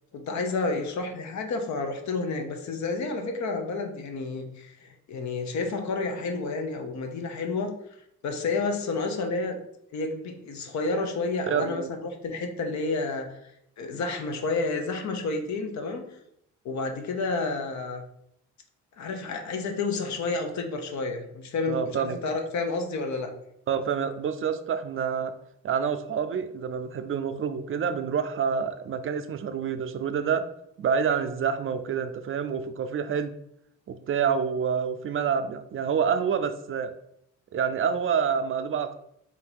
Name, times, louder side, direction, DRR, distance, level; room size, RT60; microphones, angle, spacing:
voice 1, 0.1-7.7 8.2-9.6 9.9-13.4 13.8-16.1 16.6-18.0 19.0-23.3, left 3 dB, 65° left, 4 dB, 0.9 m, -30 dB
voice 2, 11.5-11.9 21.7-22.2 23.7-25.3 25.6-30.5 30.8-33.3 33.9-36.9 37.5-39.0, right 7 dB, 45° right, 10 dB, 0.4 m, -27 dB
3.6 x 2.7 x 4.4 m, 0.74 s
cardioid pair, 90°, 30 cm